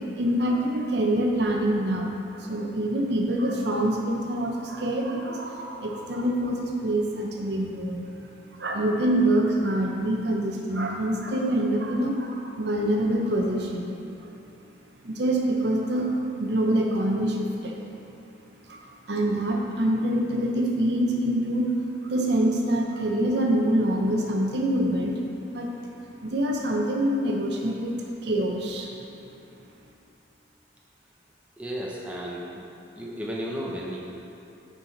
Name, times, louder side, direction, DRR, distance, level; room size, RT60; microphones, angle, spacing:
voice 1, 0.0-8.1 8.5-13.9 14.2-14.3 15.0-17.8 18.7-21.7 22.0-25.2 25.5-25.7 26.2-29.0, right 1 dB, 60° right, 0 dB, 0.8 m, -25 dB
voice 2, 31.6-32.6 32.9-34.0, equal, 5° right, -5 dB, 0.8 m, -33 dB
9.5 x 4.8 x 4.0 m, 2.8 s
head